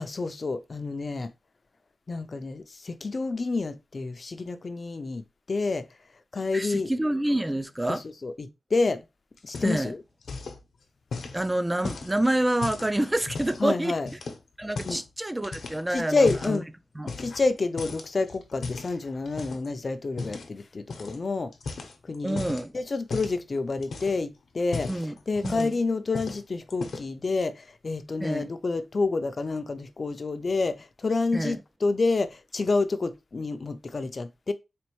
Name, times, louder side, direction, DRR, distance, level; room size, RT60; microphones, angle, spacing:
voice 1, 0.0-1.3 2.1-5.9 6.3-6.9 7.9-9.0 9.4-10.0 13.6-14.1 14.8-15.0 15.9-16.7 17.2-21.5 22.1-22.4 22.7-24.9 25.3-34.5, left 3 dB, 45° left, 0.4 m, -28 dB
voice 2, 6.5-8.0 9.6-9.9 11.3-14.2 14.6-16.6 17.0-17.1 22.2-22.7 24.9-25.2 25.4-25.7 28.2-28.5 31.3-31.6, right 1 dB, 15° right, 0.4 m, -27 dB
sound 1, 9.4-10.0 10.2-10.6 11.1-13.6 14.1-15.1 15.4-16.6 17.1-17.5 17.8-19.7 20.2-20.5 20.9-21.2 21.5-22.7 23.1-23.4 23.8-24.3 24.6-25.8 26.1-26.4 26.7-27.2, left 4 dB, 90° left, 0.8 m, -36 dB
4.2 x 3.0 x 3.0 m
wide cardioid pair, 95°, 0 cm